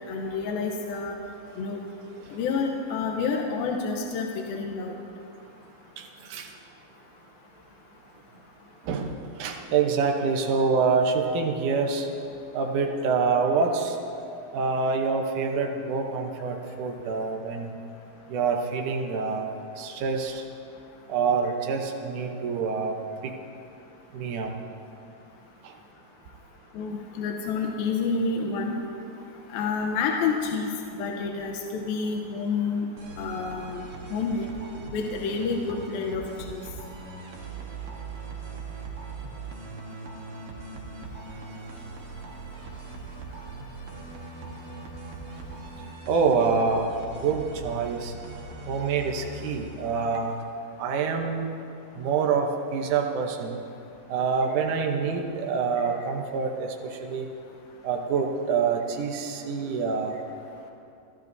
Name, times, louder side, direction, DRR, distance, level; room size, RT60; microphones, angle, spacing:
voice 1, 0.1-1.2 1.6-1.8 2.3-4.9 26.7-28.8 29.5-30.7 31.0-32.9 33.2-33.8 34.1-34.5 34.9-36.6, left 4 dB, 75° left, 1 dB, 2.4 m, -29 dB
voice 2, 6.0-6.5 8.9-9.1 9.4-12.1 12.5-14.0 14.5-17.7 18.3-19.5 19.8-20.4 21.1-22.9 24.1-24.5 46.1-48.1 48.7-50.4 50.8-51.5 52.0-53.6 54.1-57.3 57.8-60.2, right 5 dB, 85° right, 1 dB, 1.7 m, -26 dB
sound 1, 33.0-50.4, right 3 dB, 60° right, 1.5 m, -40 dB
28.5 x 13.0 x 2.7 m, 2.6 s
omnidirectional pair, 4.9 m